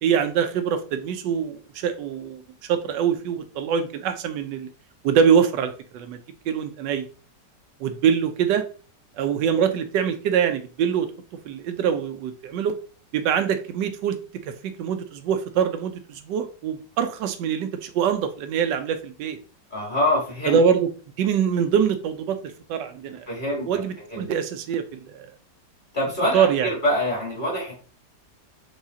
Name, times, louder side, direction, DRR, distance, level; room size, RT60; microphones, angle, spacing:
voice 1, 0.0-4.7 5.0-6.2 6.5-7.1 7.8-8.6 9.2-11.1 11.4-12.8 13.1-19.4 20.5-20.9 21.2-23.3 23.7-25.3 26.3-26.7, right 7 dB, 80° right, 8 dB, 1.2 m, -24 dB
voice 2, 19.7-20.6 23.3-23.6 24.1-24.3 25.9-27.7, left 1 dB, 30° left, -3 dB, 1.9 m, -25 dB
4.7 x 3.7 x 2.7 m, 0.38 s
omnidirectional pair, 1.9 m